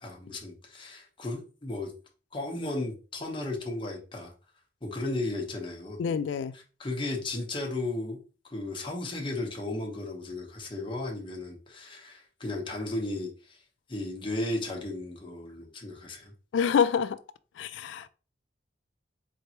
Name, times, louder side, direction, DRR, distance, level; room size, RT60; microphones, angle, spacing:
voice 1, 0.0-1.9 2.3-4.3 4.8-6.0 6.5-8.2 8.4-13.6 13.9-16.3, left 2 dB, 30° left, 0.9 m, -35 dB
voice 2, 6.0-6.5 16.5-17.2 17.6-18.1, left 7 dB, 80° left, 0.3 m, -26 dB
4.2 x 3.3 x 2.8 m
head